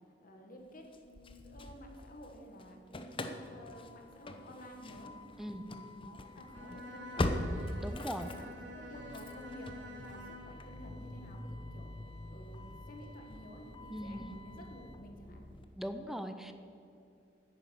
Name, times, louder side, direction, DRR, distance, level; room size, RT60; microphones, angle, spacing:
voice 1, 0.2-2.8 3.2-5.1 5.5-7.4 8.0-12.0 12.3-15.4, left 1 dB, 50° left, 3 dB, 1.7 m, -52 dB
Engine starting / Slam, 0.9-2.3 2.6-15.6, left 1 dB, 30° left, 0.8 m, -42 dB
Bowed string instrument, 6.5-10.7, equal, 85° right, 1.9 m, -49 dB
voice 2, 7.8-8.3 13.9-14.3 15.8-16.5, equal, ahead, 8 dB, 0.6 m, -40 dB
10.0 x 9.1 x 7.0 m, 2.6 s
head